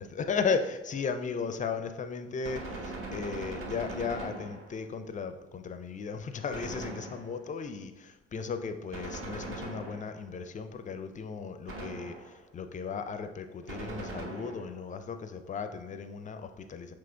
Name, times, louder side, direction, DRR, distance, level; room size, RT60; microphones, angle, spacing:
voice 1, 0.0-16.9, left 5 dB, 25° left, 9 dB, 0.4 m, -36 dB
Gunshot gunfire, 2.4-4.9 6.5-7.6 8.9-10.4 11.7-12.5 13.7-14.8, right 2 dB, 45° right, 0.8 m, -40 dB
6.9 x 3.0 x 2.3 m, 1.0 s
figure-of-eight pair, 45°, 30 cm